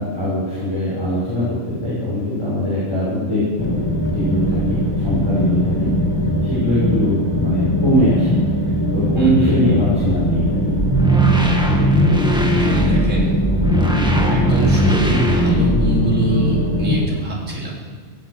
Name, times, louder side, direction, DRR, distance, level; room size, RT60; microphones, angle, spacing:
voice 1, 0.0-5.9 6.5-8.4 8.9-10.8, equal, 20° right, -10 dB, 5.8 m, -21 dB
sound 1, 3.6-17.1, left 1 dB, 20° left, 1.5 m, -20 dB
voice 2, 9.2-9.6 12.5-13.4 14.0-17.7, right 2 dB, 65° right, -3 dB, 3.5 m, -24 dB
sound 2, 10.8-16.1, right 1 dB, 5° right, 1.5 m, -18 dB
16.0 x 10.0 x 8.0 m, 1.5 s
omnidirectional pair, 1.4 m